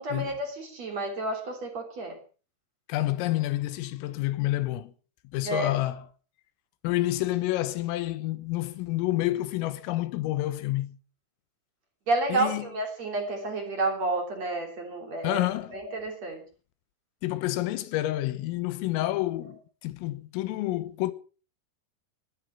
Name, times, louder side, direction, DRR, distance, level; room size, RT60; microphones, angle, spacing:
voice 1, 0.0-2.2 5.4-5.7 12.1-15.4 15.7-16.4, right 2 dB, 35° right, 3.8 m, -30 dB
voice 2, 2.9-4.9 5.3-6.0 6.8-11.0 12.3-12.7 15.2-15.8 17.2-21.1, left 16 dB, 90° left, 3.8 m, -29 dB
20.5 x 11.5 x 5.8 m
omnidirectional pair, 5.8 m